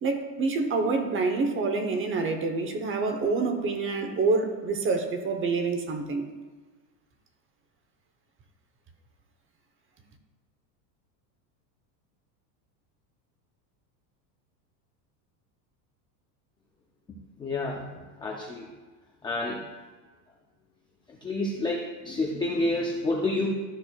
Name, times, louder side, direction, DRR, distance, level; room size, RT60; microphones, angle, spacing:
voice 1, 0.0-6.2, right 3 dB, 25° right, 6 dB, 0.8 m, -27 dB
voice 2, 17.4-17.8 18.2-18.6 19.2-19.6 21.2-23.5, left 2 dB, 10° left, -2 dB, 0.3 m, -28 dB
13.5 x 6.1 x 2.3 m, 1.4 s
supercardioid pair, 145°, 50 cm